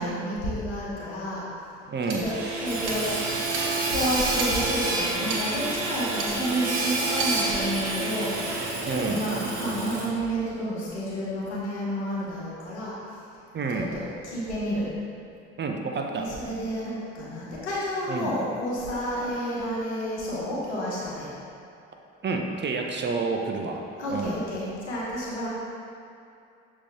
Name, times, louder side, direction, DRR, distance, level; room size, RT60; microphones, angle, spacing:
voice 1, 0.0-1.4 2.0-13.2 13.9-14.9 16.1-21.3 24.0-25.5, equal, 85° left, -6 dB, 1.3 m, -30 dB
voice 2, 1.9-2.3 8.9-9.2 13.5-13.9 15.6-16.3 18.1-18.3 22.2-23.8 24.1-24.4, right 4 dB, 35° right, 2 dB, 0.7 m, -29 dB
Hammer / Sawing, 2.1-10.3, right 3 dB, 80° right, 0.9 m, -28 dB
6.8 x 4.3 x 3.7 m, 2.6 s
hypercardioid pair, 55°, 33 cm